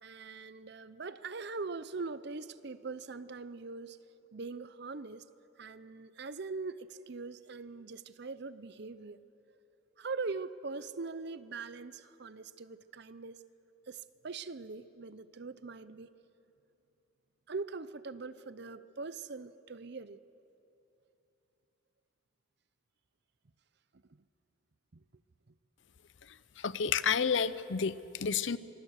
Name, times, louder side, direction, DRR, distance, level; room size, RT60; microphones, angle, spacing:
voice 1, 0.0-4.0 4.3-5.2 5.6-9.2 10.0-13.4 13.9-16.1 17.5-20.2 23.9-24.2 24.9-25.0, right 4 dB, 55° right, 15 dB, 0.7 m, -42 dB
voice 2, 26.6-28.6, left 6 dB, 65° left, 16 dB, 0.6 m, -30 dB
26.0 x 22.0 x 6.5 m, 2.9 s
head